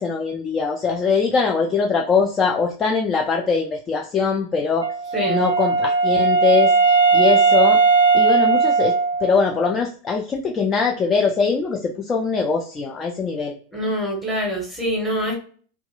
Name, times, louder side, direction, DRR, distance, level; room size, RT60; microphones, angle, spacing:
voice 1, 0.0-6.7 7.1-7.8 8.1-13.5, left 5 dB, 25° left, 2 dB, 0.3 m, -22 dB
Wind instrument woodwind instrument, 4.8-9.6, right 4 dB, 70° right, 0.3 m, -17 dB
voice 2, 13.7-15.4, equal, ahead, -1 dB, 1.0 m, -24 dB
2.7 x 2.2 x 2.3 m, 0.43 s
figure-of-eight pair, 90°, 0 cm